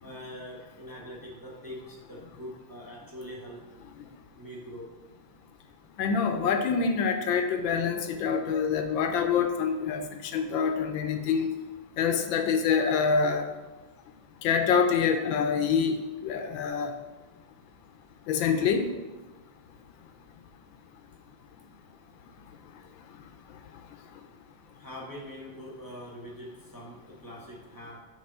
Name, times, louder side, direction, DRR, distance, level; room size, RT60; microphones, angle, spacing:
voice 1, 0.0-3.6 4.4-4.9 24.7-28.0, equal, 15° left, -3 dB, 0.7 m, -43 dB
voice 2, 6.0-11.5 12.0-13.5 14.4-16.9 18.3-18.9, left 6 dB, 75° left, 6 dB, 1.2 m, -26 dB
7.8 x 3.4 x 5.3 m, 1.1 s
omnidirectional pair, 2.4 m